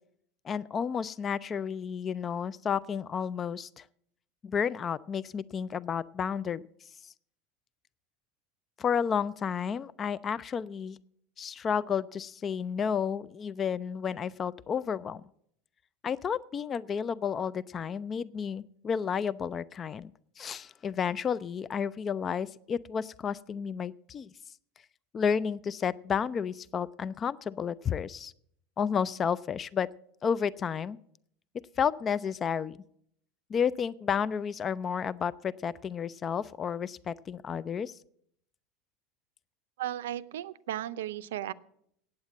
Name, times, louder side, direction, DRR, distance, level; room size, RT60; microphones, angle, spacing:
voice 1, 0.4-3.8 4.4-6.6 7.0-7.1 8.8-11.0 11.4-15.2 16.0-20.1 20.4-24.3 25.1-28.3 28.8-29.9 30.2-31.0 31.8-32.8 33.5-38.0, left 7 dB, 30° left, 19 dB, 0.3 m, -31 dB
voice 2, 39.8-41.5, right 12 dB, 70° right, 14 dB, 0.5 m, -35 dB
8.8 x 8.6 x 7.3 m, 0.69 s
hypercardioid pair, 80°, 0 cm